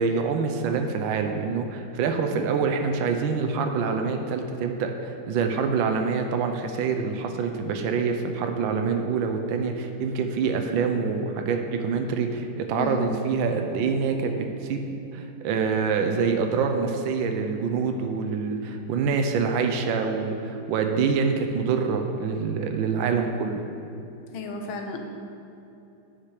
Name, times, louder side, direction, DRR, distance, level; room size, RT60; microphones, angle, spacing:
voice 1, 0.0-23.6, right 5 dB, 75° right, 5 dB, 1.4 m, -26 dB
voice 2, 12.8-13.1 24.3-25.0, left 3 dB, 85° left, 3 dB, 1.7 m, -32 dB
9.9 x 5.9 x 4.8 m, 2.8 s
omnidirectional pair, 2.2 m